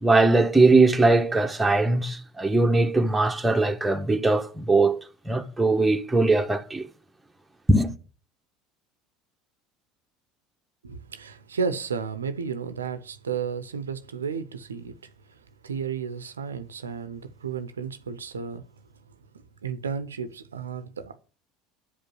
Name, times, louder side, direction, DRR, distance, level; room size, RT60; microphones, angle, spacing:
voice 1, 0.0-6.9 7.7-7.9, right 3 dB, 10° right, 1.3 m, -21 dB
voice 2, 10.8-18.6 19.1-21.2, right 6 dB, 80° right, 0.7 m, -33 dB
9.9 x 5.1 x 7.7 m
figure-of-eight pair, 70°, 0 cm